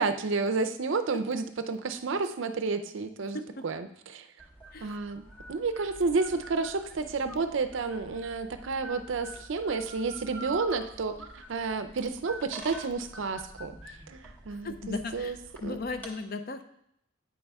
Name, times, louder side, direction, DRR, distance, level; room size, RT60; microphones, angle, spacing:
voice 1, 0.0-4.3 4.8-5.2 5.5-13.8 14.1-15.4 15.6-15.8, right 4 dB, 65° right, 8 dB, 0.5 m, -31 dB
voice 2, 3.3-3.7 4.7-5.0 14.6-16.6, left 3 dB, 45° left, 8 dB, 0.5 m, -36 dB
sound 1, 4.4-16.1, right 2 dB, 10° left, 0.9 m, -46 dB
8.8 x 5.4 x 3.5 m, 0.74 s
head